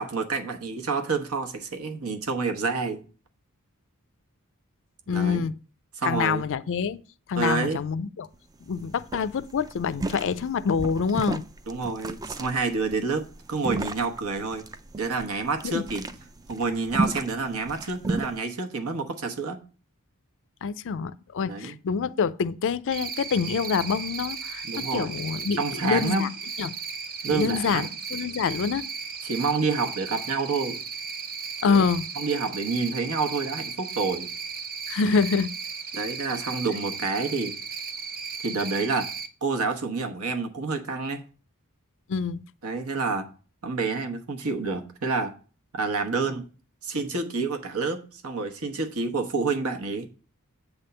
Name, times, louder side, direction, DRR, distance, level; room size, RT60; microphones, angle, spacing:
voice 1, 0.0-3.0 5.1-5.5 6.0-6.4 7.4-7.8 11.7-14.6 15.0-16.1 16.5-19.6 21.4-21.8 24.6-25.1 25.6-26.3 27.2-27.9 29.2-30.8 31.6-31.8 32.1-34.3 35.9-37.5 38.4-39.1 39.4-41.2 42.6-43.3 43.6-45.3 45.7-46.5 46.8-50.1, right 4 dB, 75° right, 1.1 m, -28 dB
voice 2, 5.1-5.5 6.0-7.0 7.3-8.3 8.7-11.4 15.7-15.8 20.6-25.6 25.8-26.3 26.6-26.7 27.3-28.9 31.6-32.0 34.9-35.5 42.1-42.4, left 5 dB, 60° left, 0.4 m, -26 dB
sound 1, 8.3-8.4 8.7-8.8 9.1-18.4, right 2 dB, 15° right, 0.4 m, -33 dB
Cricket, 22.9-39.3, right 5 dB, 45° right, 0.8 m, -36 dB
8.2 x 3.6 x 6.7 m
head